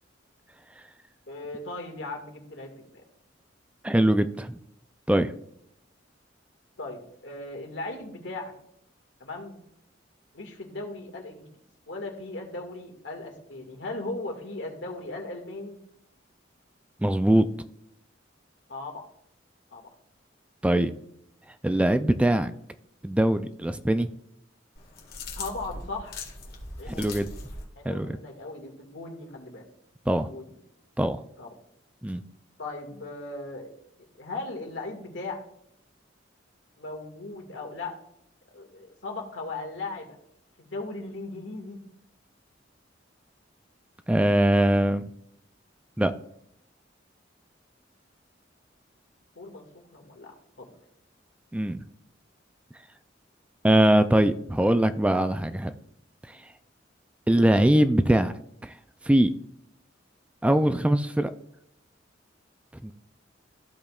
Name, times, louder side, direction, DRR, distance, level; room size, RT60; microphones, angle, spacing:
voice 1, 1.3-3.0 6.8-8.5 9.2-9.6 10.3-11.5 11.9-15.8 18.7-19.0 19.7-19.8 25.3-26.2 26.8-27.3 27.8-29.7 30.1-30.4 31.4-31.5 32.6-33.7 34.1-35.4 36.8-37.9 38.5-40.2 40.6-41.8 49.4-50.7, left 2 dB, 75° left, 1 dB, 2.0 m, -38 dB
voice 2, 3.8-4.6 5.1-5.3 17.0-17.5 20.6-20.9 21.6-22.5 23.0-24.1 26.9-27.3 27.8-28.1 30.1-30.3 31.0-31.2 32.0-32.2 44.1-45.0 46.0-46.1 51.5-51.8 53.6-55.7 56.3-56.4 57.3-58.3 58.6-58.8 59.0-59.3 60.4-61.3 62.8-62.9, right 1 dB, 5° right, 10 dB, 0.3 m, -22 dB
sound 1, 24.8-27.7, left 3 dB, 55° left, 1.8 m, -40 dB
14.5 x 5.2 x 2.4 m, 0.73 s
head